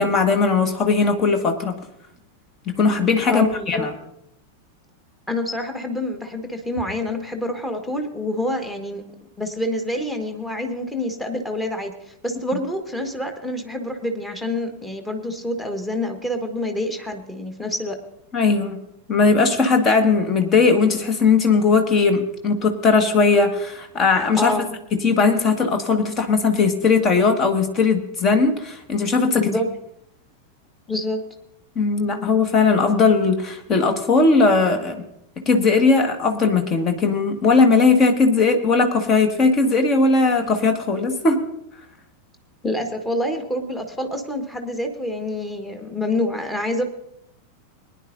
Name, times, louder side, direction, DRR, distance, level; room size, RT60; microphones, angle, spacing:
voice 1, 0.0-1.8 2.7-3.9 18.3-18.8 19.1-24.6 24.9-29.5 31.8-34.9 35.5-41.4, left 4 dB, 30° left, 6 dB, 1.6 m, -18 dB
voice 2, 3.3-3.9 5.3-9.0 9.4-18.0 24.4-24.8 29.3-29.7 30.9-31.2 42.6-46.8, left 1 dB, 5° left, 5 dB, 1.6 m, -27 dB
22.0 x 10.5 x 2.7 m, 0.80 s
figure-of-eight pair, 90°, 0 cm